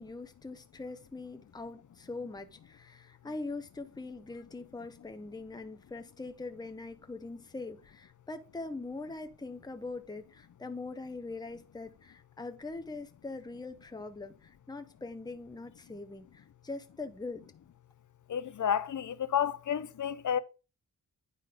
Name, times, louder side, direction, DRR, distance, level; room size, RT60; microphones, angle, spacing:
voice 1, 0.0-17.5, left 3 dB, 10° left, 0.8 m, -42 dB
voice 2, 18.3-20.4, left 9 dB, 60° left, 0.7 m, -31 dB
9.5 x 3.9 x 5.0 m
cardioid pair, 80°, 35 cm